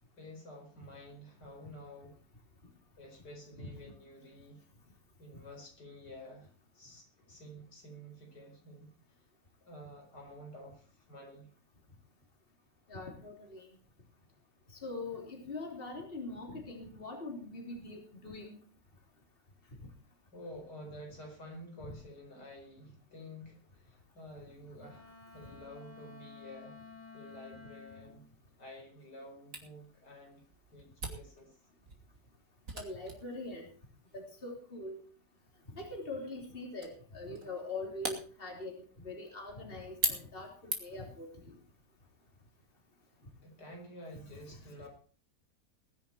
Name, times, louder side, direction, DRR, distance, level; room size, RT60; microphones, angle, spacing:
voice 1, 0.2-2.2 3.0-4.6 5.2-9.2 9.6-11.5 20.3-26.8 27.1-28.3 28.6-30.4 30.7-31.6 43.4-44.9, equal, 85° left, 2 dB, 5.5 m, -50 dB
voice 2, 3.6-3.9 12.9-13.7 14.7-18.6 32.7-33.7 34.1-35.0 35.7-41.5 44.5-44.6, left 2 dB, 35° left, 1 dB, 3.6 m, -43 dB
Wind instrument woodwind instrument, 24.8-28.2, left 5 dB, 10° left, 4.5 m, -52 dB
Camera, 29.5-41.1, right 2 dB, 55° right, 3.2 m, -43 dB
21.0 x 10.5 x 4.5 m, 0.40 s
omnidirectional pair, 1.7 m